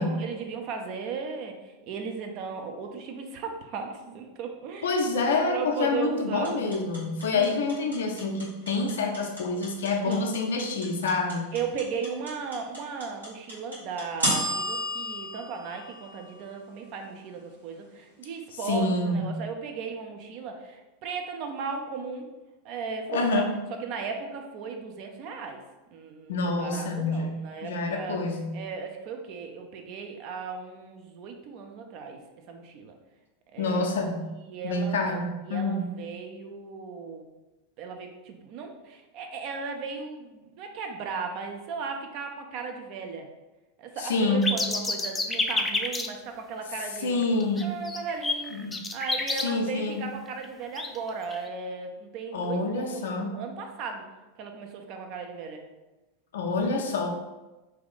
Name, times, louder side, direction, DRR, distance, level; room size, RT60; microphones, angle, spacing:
voice 1, 0.0-5.0 5.5-6.6 7.3-7.6 10.0-10.3 11.5-22.3 22.6-23.5 23.8-25.6 25.9-28.2 28.5-32.2 32.5-32.9 33.5-33.9 34.4-35.0 35.5-37.3 37.8-43.3 43.8-47.2 47.6-48.6 48.9-54.0 54.4-55.6, right 5 dB, 45° right, 3 dB, 0.5 m, -36 dB
voice 2, 4.8-11.5 18.7-19.4 23.1-23.5 26.3-28.6 33.6-34.3 34.6-35.9 44.0-44.5 47.0-47.7 48.5-48.8 49.4-50.0 52.3-53.4 56.3-57.1, left 3 dB, 70° left, 3 dB, 0.5 m, -27 dB
sound 1, 6.4-16.6, equal, 85° right, 1.2 m, -32 dB
sound 2, 44.4-46.1 47.0-47.1 47.4-49.4 50.4-50.5 50.7-51.5, left 3 dB, 15° left, 0.3 m, -28 dB
2.8 x 2.4 x 3.8 m, 1.1 s
figure-of-eight pair, 90°, 0 cm